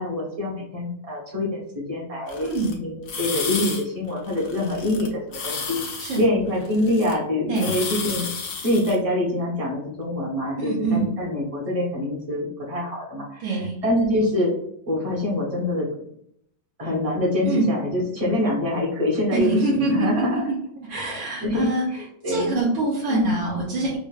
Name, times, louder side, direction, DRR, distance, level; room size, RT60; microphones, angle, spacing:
voice 1, 0.0-8.3 8.6-14.5 14.9-15.9 16.8-20.5 21.0-22.6 23.1-23.3, left 1 dB, 35° right, -4 dB, 0.5 m, -25 dB
sound 1, 2.3-2.7 3.1-3.8 4.1-5.1 5.3-7.1 7.5-9.0, left 5 dB, 75° left, 0.7 m, -32 dB
voice 2, 2.4-2.7 6.0-6.2 7.5-7.7 10.6-11.1 13.4-13.8 17.4-17.7 19.3-20.6 20.9-21.8 22.3-24.0, right 3 dB, 80° right, -5 dB, 1.5 m, -24 dB
5.0 x 2.2 x 2.3 m, 0.72 s
omnidirectional pair, 2.2 m